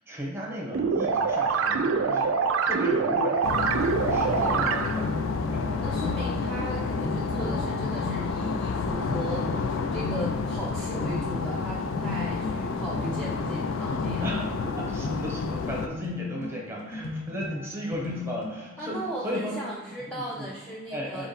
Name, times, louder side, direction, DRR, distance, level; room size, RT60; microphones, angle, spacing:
voice 1, 0.1-2.3 2.6-3.7 4.0-5.8 11.0-11.3 14.2-18.9 19.2-19.5 20.1-20.5 20.9-21.3, equal, 10° right, -3 dB, 1.0 m, -35 dB
sound 1, 0.7-5.2, right 5 dB, 85° right, 0.4 m, -25 dB
sound 2, 3.4-15.9, left 4 dB, 80° left, 0.4 m, -30 dB
voice 2, 4.0-4.8 5.8-14.4 18.8-21.3, right 1 dB, 5° left, -6 dB, 0.5 m, -37 dB
sound 3, 4.8-19.4, left 3 dB, 55° left, 0.9 m, -37 dB
3.9 x 3.0 x 4.1 m, 1.2 s
head